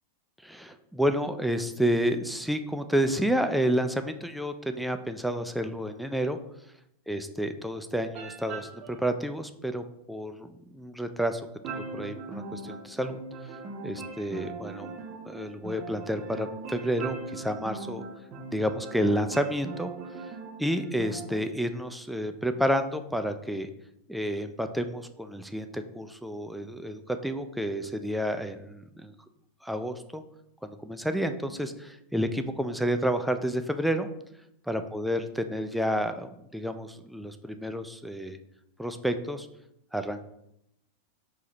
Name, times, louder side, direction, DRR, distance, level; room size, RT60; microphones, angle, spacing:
voice 1, 0.4-6.4 7.1-11.4 11.7-13.2 13.8-14.9 15.3-18.0 18.5-19.9 20.6-23.7 24.1-29.1 29.6-30.2 30.6-34.1 34.7-38.4 38.8-39.5 39.9-40.2, equal, ahead, 8 dB, 0.3 m, -30 dB
sound 1, 8.1-9.0 11.6-21.4, right 4 dB, 40° right, 0.6 m, -40 dB
5.3 x 2.8 x 3.1 m, 0.81 s
figure-of-eight pair, 90°, 0 cm